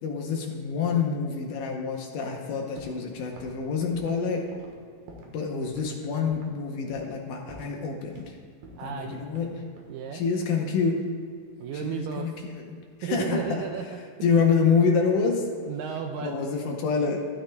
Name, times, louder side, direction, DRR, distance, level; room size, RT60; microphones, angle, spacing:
voice 1, 0.0-4.5 5.3-8.2 8.8-9.6 10.1-11.1 11.7-13.7 14.2-15.5 16.2-17.2, left 5 dB, 75° left, 1 dB, 1.9 m, -27 dB
sound 1, 2.8-3.1 3.4-5.4 5.6-5.9 6.3-6.6 6.9-7.2 7.5-8.3 8.6-10.0 10.9-11.9 12.1-12.6, right 1 dB, 70° right, 2.9 m, -48 dB
voice 2, 8.8-9.2 9.9-10.2 11.6-12.3 13.0-14.3 15.7-16.3, right 8 dB, 90° right, 4 dB, 1.9 m, -33 dB
12.5 x 12.0 x 2.3 m, 2.2 s
omnidirectional pair, 4.5 m